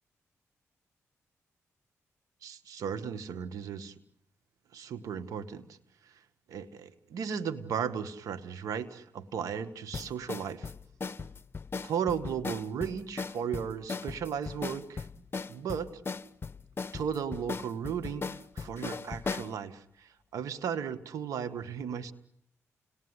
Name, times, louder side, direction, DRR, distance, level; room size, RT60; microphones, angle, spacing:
voice 1, 2.4-4.0 4.7-5.8 6.0-6.2 6.5-10.7 11.8-16.0 16.9-22.1, right 7 dB, 85° right, 10 dB, 1.8 m, -36 dB
sound 1, 9.9-19.5, left 4 dB, 40° left, 1.1 m, -38 dB
30.0 x 20.0 x 9.8 m, 0.74 s
cardioid pair, 60°, 6 cm